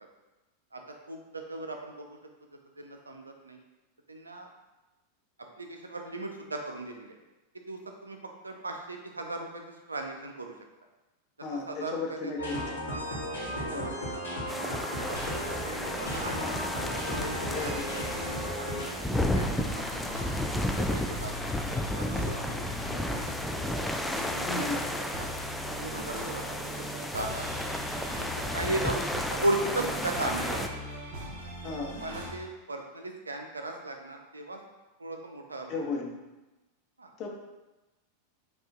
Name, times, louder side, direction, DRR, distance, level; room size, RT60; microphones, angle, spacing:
voice 1, 0.7-2.2 2.8-3.6 4.1-4.5 5.6-7.1 7.5-10.5 11.5-12.6 13.6-16.6 17.2-19.0 19.3-20.0 20.6-21.3 21.9-23.7 24.3-25.5 25.8-26.4 26.8-27.6 28.5-30.7 31.9-34.6 35.0-35.9 37.0-37.1, right 2 dB, 80° right, 3 dB, 0.5 m, -37 dB
voice 2, 11.4-12.8 13.6-13.9 17.5-17.9 24.4-24.8 31.6-31.9 35.7-36.2 37.2-37.3, left 4 dB, 40° left, 1 dB, 0.8 m, -35 dB
sound 1, 12.4-18.9, equal, 80° left, 1.3 m, -35 dB
sound 2, 14.5-30.7, left 1 dB, 5° left, 0.3 m, -33 dB
sound 3, 15.0-32.3, equal, 50° right, 1.3 m, -40 dB
5.0 x 2.4 x 3.7 m, 1.1 s
figure-of-eight pair, 90°, 0 cm